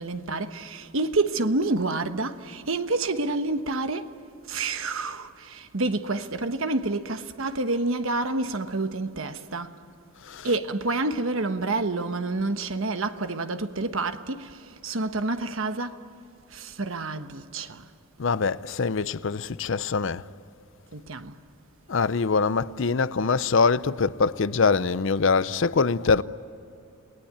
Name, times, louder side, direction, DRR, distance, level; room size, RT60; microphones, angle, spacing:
voice 1, 0.0-4.2 4.5-9.8 10.4-16.0 16.5-17.9 20.9-21.4, right 2 dB, 70° right, 1.2 m, -28 dB
voice 2, 10.2-10.6 18.2-20.2 21.9-26.2, left 4 dB, 60° left, 0.6 m, -24 dB
29.5 x 19.0 x 8.7 m
head